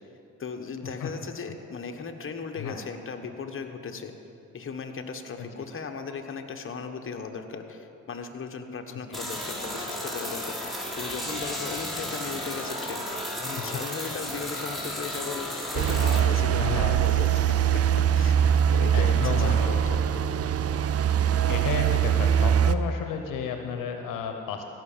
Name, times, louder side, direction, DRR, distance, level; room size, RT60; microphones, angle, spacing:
voice 1, 0.4-4.1 4.5-17.8 18.1-18.4 18.7-20.4, left 5 dB, 40° left, 4 dB, 1.2 m, -37 dB
voice 2, 5.4-5.7 9.1-9.3 14.0-14.1 16.6-17.0 18.5-19.8 21.1-24.7, left 6 dB, 75° left, 5 dB, 0.9 m, -33 dB
sound 1, 9.1-16.2, left 1 dB, ahead, 3.0 m, -34 dB
sound 2, 15.7-22.7, right 9 dB, 50° right, 0.6 m, -22 dB
16.0 x 5.9 x 7.3 m, 2.7 s
supercardioid pair, 55°, 32 cm